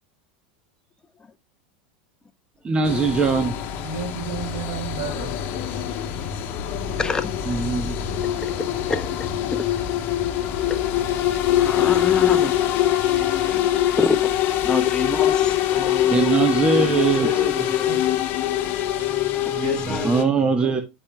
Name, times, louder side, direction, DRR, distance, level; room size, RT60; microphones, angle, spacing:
voice 1, 2.6-3.5 7.5-8.0 16.1-17.4 20.0-20.8, right 5 dB, 25° right, 1.0 m, -21 dB
sound 1, 2.8-20.2, left 12 dB, 50° left, 1.0 m, -24 dB
voice 2, 3.8-5.3 6.9-7.0 17.6-18.0 18.9-20.5, right 4 dB, 55° right, 2.5 m, -33 dB
voice 3, 7.0-7.3 8.4-8.5 8.8-9.6 10.7-10.8 11.5-12.5 13.5-13.7 14.0-14.3 14.7-17.9 19.6-20.3, left 5 dB, 15° left, 0.7 m, -27 dB
11.5 x 4.5 x 2.2 m
hypercardioid pair, 90°, 5 cm